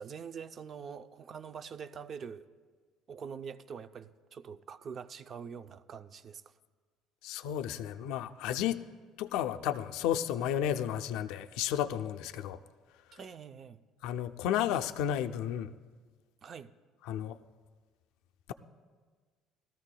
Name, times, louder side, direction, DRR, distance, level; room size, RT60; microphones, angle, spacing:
voice 1, 0.0-2.5 3.1-6.5 13.1-13.8 16.4-16.7, right 6 dB, 40° right, 0.4 m, -44 dB
voice 2, 7.2-8.8 9.2-12.6 14.0-15.7 17.1-17.4, left 10 dB, 80° left, 0.4 m, -32 dB
19.0 x 13.5 x 2.2 m
cardioid pair, 130°, 0 cm